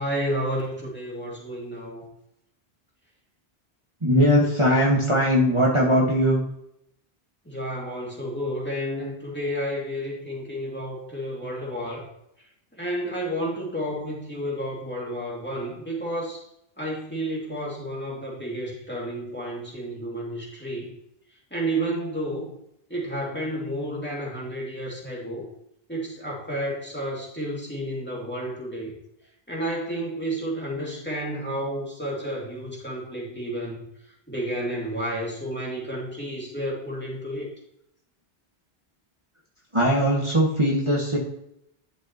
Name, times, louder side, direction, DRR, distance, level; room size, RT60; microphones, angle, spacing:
voice 1, 0.0-2.1 7.5-12.0 12.8-16.4 16.8-20.9 21.5-22.5 22.9-25.5 25.9-28.9 29.5-33.8 34.3-37.5, equal, 10° left, -4 dB, 2.5 m, -31 dB
voice 2, 4.0-6.4 39.7-41.2, equal, 30° right, -4 dB, 1.7 m, -20 dB
11.5 x 6.3 x 3.0 m, 0.77 s
omnidirectional pair, 1.0 m